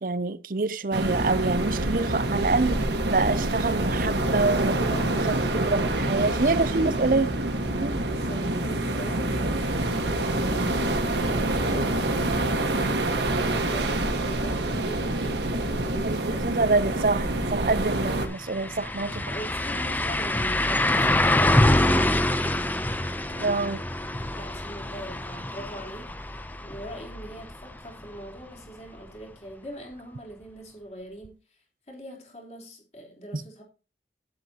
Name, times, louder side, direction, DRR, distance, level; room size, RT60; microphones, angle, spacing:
voice 1, 0.0-4.8 5.1-7.3 7.8-8.0 16.0-19.3 23.4-23.8 33.3-33.4, right 3 dB, 50° right, 0.6 m, -26 dB
sound 1, 0.9-18.3, right 1 dB, 80° right, 1.6 m, -26 dB
voice 2, 4.8-5.4 6.0-7.0 8.1-12.3 12.6-16.6 19.3-22.6 23.2-26.3 26.6-31.6 31.9-33.6, right 1 dB, 35° left, 3.7 m, -42 dB
sound 2, 17.8-17.9 18.2-28.0 28.4-28.5 31.2-31.3, left 1 dB, 10° left, 0.6 m, -25 dB
12.0 x 9.6 x 2.9 m
head